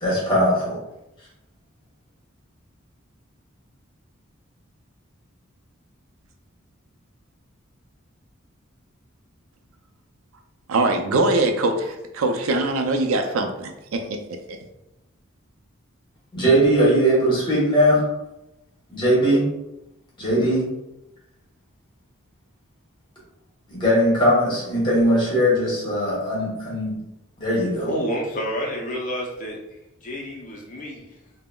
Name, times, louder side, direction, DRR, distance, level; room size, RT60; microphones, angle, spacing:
voice 1, 0.0-0.8 16.3-18.0 18.9-19.5 20.2-20.7 23.7-27.0 27.4-27.9, equal, 25° left, -6 dB, 1.0 m, -19 dB
voice 2, 10.7-14.2 14.5-14.6, right 2 dB, 85° right, 4 dB, 0.4 m, -22 dB
voice 3, 27.8-29.6 30.0-31.1, equal, 40° left, -2 dB, 0.5 m, -29 dB
3.5 x 2.0 x 2.2 m, 0.92 s
head